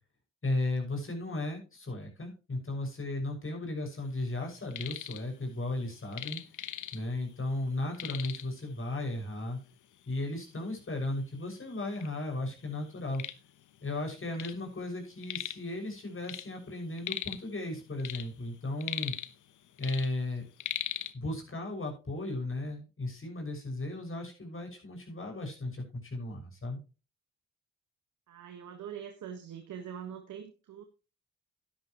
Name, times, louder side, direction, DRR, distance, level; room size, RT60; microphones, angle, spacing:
voice 1, 0.4-6.4 6.9-9.6 10.1-13.2 13.8-19.1 19.8-20.4 21.1-26.8, left 2 dB, 40° left, 3 dB, 6.2 m, -35 dB
sound 1, 4.5-5.2 5.5-7.3 7.6-7.7 7.9-8.6 9.4-9.5 10.0-10.1 10.8-10.9 11.2-12.1 12.6-14.6 14.9-15.7 16.0-17.5 17.9-19.5 19.8-21.1, left 11 dB, 70° left, 1.0 m, -39 dB
voice 2, 28.3-30.8, right 8 dB, 70° right, 5 dB, 1.5 m, -43 dB
11.5 x 11.0 x 3.0 m, 0.32 s
supercardioid pair, 45°, 32 cm